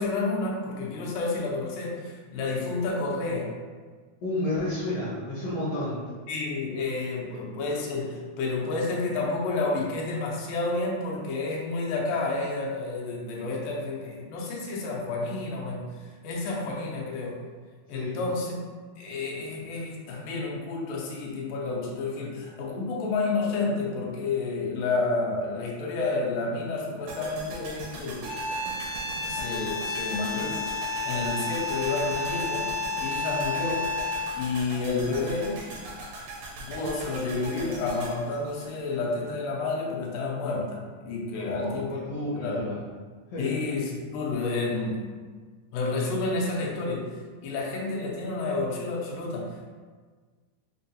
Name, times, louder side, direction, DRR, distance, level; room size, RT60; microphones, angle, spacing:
voice 1, 0.0-3.6 6.3-16.0 16.2-17.4 17.9-18.6 19.0-28.3 29.3-32.7 33.0-33.9 34.4-35.6 36.6-42.0 42.3-42.8 43.4-45.0 45.7-49.7, left 3 dB, 85° left, -2 dB, 2.4 m, -30 dB
voice 2, 4.2-6.1 17.9-18.2 41.3-42.8 43.3-43.6, left 1 dB, 70° left, -7 dB, 1.4 m, -31 dB
sound 1, 27.1-39.3 39.5-39.6, right 2 dB, 75° right, 1.6 m, -40 dB
sound 2, 28.2-34.4, left 3 dB, 55° right, 0.8 m, -31 dB
6.0 x 2.3 x 2.7 m, 1.5 s
omnidirectional pair, 3.8 m